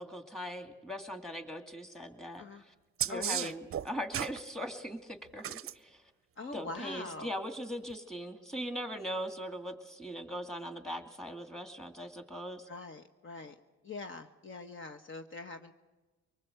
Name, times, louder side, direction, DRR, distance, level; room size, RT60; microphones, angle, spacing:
voice 1, 0.0-2.7 3.0-6.0 6.5-12.7, equal, ahead, 7 dB, 2.4 m, -40 dB
sound 1, 3.0-4.4 5.4-5.7 7.9-8.0, right 10 dB, 45° right, 0.7 m, -34 dB
voice 2, 3.1-3.5 6.4-7.3 12.7-13.5 13.8-15.7, left 4 dB, 40° left, 4 dB, 1.3 m, -43 dB
24.0 x 20.0 x 7.9 m, 1.2 s
cardioid pair, 90°, 30 cm